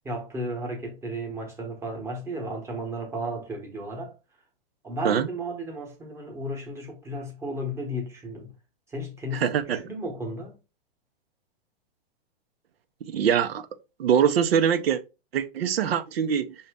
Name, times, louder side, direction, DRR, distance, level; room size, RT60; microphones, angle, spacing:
voice 1, 0.0-4.2 4.8-8.5 8.9-10.6, equal, 10° right, 1.0 m, -34 dB
voice 2, 9.3-9.8 13.1-13.7 14.0-15.0 15.3-16.5, right 8 dB, 80° right, 0.7 m, -23 dB
5.6 x 2.8 x 3.5 m
hypercardioid pair, 155°, 30 cm